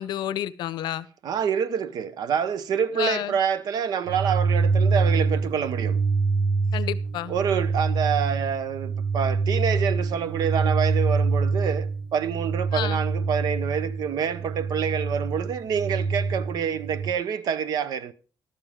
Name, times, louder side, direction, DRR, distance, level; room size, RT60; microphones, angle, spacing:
voice 1, 0.0-1.1 2.9-3.4 6.7-7.3 12.7-13.0, left 12 dB, 85° left, 0.6 m, -30 dB
voice 2, 1.2-6.0 7.3-18.1, right 7 dB, 65° right, 0.8 m, -27 dB
sound 1, 4.1-17.1, right 4 dB, 85° right, 1.2 m, -25 dB
13.0 x 12.0 x 3.6 m
cardioid pair, 160°, 7 cm